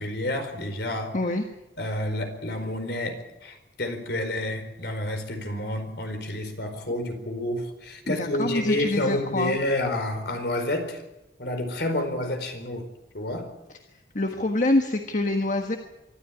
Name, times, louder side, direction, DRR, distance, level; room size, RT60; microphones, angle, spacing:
voice 1, 0.0-1.2 1.8-11.0 11.4-12.9 13.1-13.5, left 1 dB, 60° left, 6 dB, 4.4 m, -29 dB
voice 2, 8.1-9.6 14.1-15.8, left 2 dB, 45° left, 5 dB, 1.5 m, -25 dB
24.5 x 13.0 x 9.8 m, 0.98 s
head